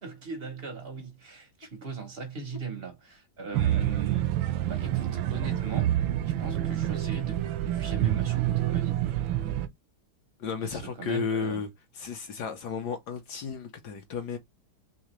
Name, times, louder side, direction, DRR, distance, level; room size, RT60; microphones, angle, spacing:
voice 1, 0.0-4.3 4.7-6.0 6.3-9.0 10.6-11.6, right 4 dB, 50° right, 0.7 m, -39 dB
sound 1, 3.5-9.7, right 12 dB, 75° right, 1.3 m, -27 dB
voice 2, 10.4-11.7 11.9-14.4, left 5 dB, 65° left, 1.1 m, -33 dB
3.7 x 3.2 x 3.0 m
omnidirectional pair, 2.3 m